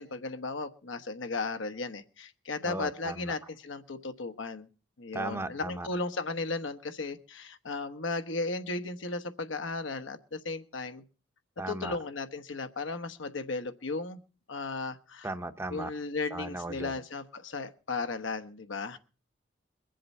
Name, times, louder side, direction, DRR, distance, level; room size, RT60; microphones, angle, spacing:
voice 1, 0.0-4.7 5.0-11.0 11.7-14.2 14.5-15.3 15.7-19.0, left 3 dB, 75° left, 8 dB, 1.1 m, -35 dB
voice 2, 2.6-3.3 5.1-5.9 11.6-12.0 15.2-15.9 16.3-16.9, right 2 dB, 15° right, 8 dB, 0.8 m, -36 dB
22.0 x 7.7 x 5.4 m, 0.36 s
head